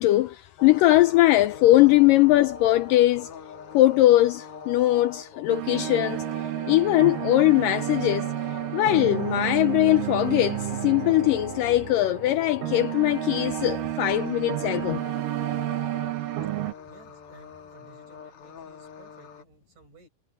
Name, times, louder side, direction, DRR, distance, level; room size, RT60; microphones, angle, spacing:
voice 1, 0.0-3.3 3.7-6.2 6.7-8.3 8.7-15.0, left 16 dB, 90° left, 1.9 m, -20 dB
sound 1, 0.6-19.4, left 6 dB, 55° left, 1.8 m, -42 dB
sound 2, 5.5-16.7, right 16 dB, 70° right, 2.4 m, -31 dB
voice 2, 16.8-20.1, right 3 dB, 45° right, 8.3 m, -55 dB
omnidirectional pair, 4.5 m